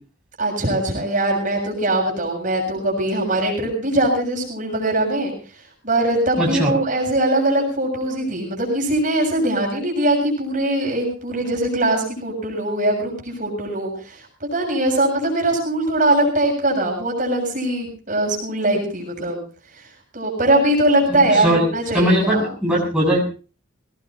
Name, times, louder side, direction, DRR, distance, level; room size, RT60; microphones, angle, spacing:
voice 1, 0.4-5.3 5.8-19.4 19.7-19.9 20.1-22.5, right 1 dB, 40° right, 0 dB, 7.1 m, -21 dB
voice 2, 6.4-6.7 21.3-21.6 21.9-23.2, equal, 5° right, -4 dB, 6.9 m, -19 dB
22.5 x 18.5 x 2.9 m, 0.36 s
head